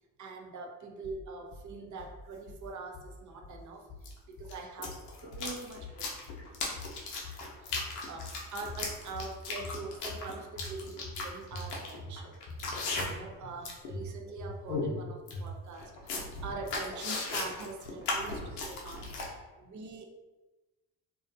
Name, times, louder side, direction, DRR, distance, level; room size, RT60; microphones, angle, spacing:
voice 1, 0.2-6.5 7.6-12.4 13.0-20.1, right 3 dB, 40° right, 2 dB, 0.5 m, -44 dB
sound 1, 1.0-1.7 2.0-2.6 2.9-3.6 3.9-4.6 4.8-5.5 5.8-6.5 6.8-7.4 7.7-8.4 8.7-9.3 9.6-10.3 10.6-11.2 11.5-12.2 12.5-13.1 13.4-13.5 13.9-14.5 14.8-15.0 15.3-15.8, left 2 dB, 40° left, 0.7 m, -44 dB
sound 2, 2.0-2.1 4.0-4.1 4.4-13.3 13.6-13.9 14.3-14.4 14.7-14.9 15.3-15.4 15.8-19.3, left 3 dB, 85° left, 0.6 m, -37 dB
2.3 x 2.2 x 2.5 m, 1.1 s
hypercardioid pair, 55°, 45 cm